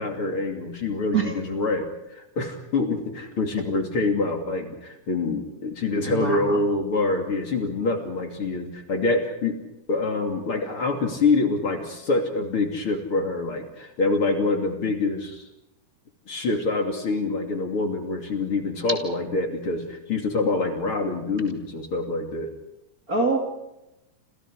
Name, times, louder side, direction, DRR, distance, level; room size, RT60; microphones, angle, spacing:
voice 1, 0.0-9.6 9.9-15.5 16.3-22.5, left 3 dB, 45° left, 3 dB, 3.4 m, -26 dB
voice 2, 6.1-6.6 23.1-23.4, right 4 dB, 30° right, 2 dB, 2.8 m, -24 dB
28.5 x 28.5 x 4.9 m, 0.91 s
omnidirectional pair, 3.6 m